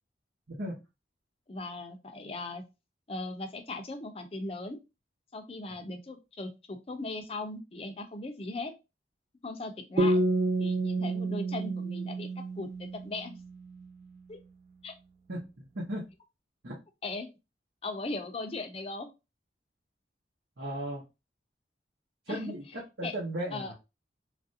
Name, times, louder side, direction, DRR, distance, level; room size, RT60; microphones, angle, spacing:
voice 1, 1.5-2.6 3.1-4.8 5.3-8.7 9.4-10.2 10.6-13.4 14.3-14.4 14.8-14.9 17.0-17.3 17.8-19.1 22.3-22.6 23.0-23.1 23.5-23.7, left 2 dB, 30° left, 5 dB, 0.5 m, -38 dB
sound 1, 10.0-13.4, right 2 dB, 35° right, 0.4 m, -29 dB
voice 2, 15.3-16.0 16.6-16.8 20.6-21.0 22.3-23.7, right 1 dB, 75° right, -4 dB, 0.9 m, -36 dB
3.2 x 2.5 x 2.7 m, 0.25 s
head